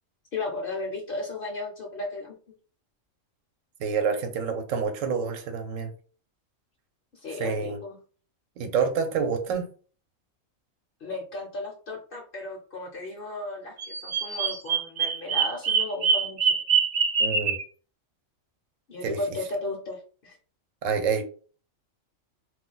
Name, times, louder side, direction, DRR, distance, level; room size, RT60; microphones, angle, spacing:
voice 1, 0.3-2.3 7.1-8.0 11.0-16.6 18.9-20.4, left 2 dB, 55° left, 0.7 m, -35 dB
voice 2, 3.8-5.9 7.4-7.8 8.6-9.7 17.2-17.6 19.0-19.2 20.8-21.2, right 6 dB, 75° right, 1.0 m, -27 dB
Bird vocalization bird call bird song, 13.8-17.6, right 6 dB, 60° right, 0.5 m, -24 dB
2.5 x 2.2 x 3.8 m
omnidirectional pair, 1.4 m